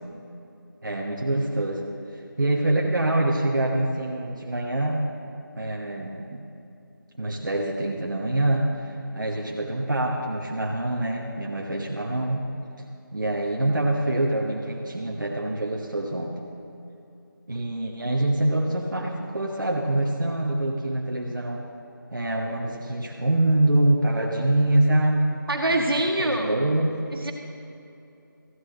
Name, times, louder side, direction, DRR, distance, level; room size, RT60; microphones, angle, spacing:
voice 1, 0.8-1.8 2.1-5.1 5.5-6.4 7.2-12.5 13.1-16.3 17.5-21.7 22.1-25.3 26.2-26.9, right 1 dB, 60° right, -1 dB, 1.1 m, -25 dB
voice 2, 25.5-26.5 27.1-27.3, right 1 dB, 90° right, 0 dB, 1.7 m, -24 dB
14.0 x 9.4 x 3.9 m, 2.8 s
figure-of-eight pair, 175°, 12 cm